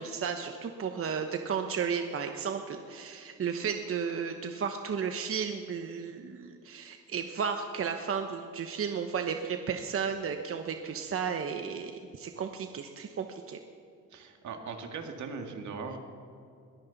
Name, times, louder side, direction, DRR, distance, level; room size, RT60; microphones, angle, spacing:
voice 1, 0.0-13.6, right 6 dB, 45° right, 6 dB, 1.0 m, -34 dB
voice 2, 14.1-16.0, right 5 dB, 70° right, 4 dB, 2.0 m, -39 dB
21.5 x 14.0 x 4.1 m, 2.5 s
cardioid pair, 90°, 30 cm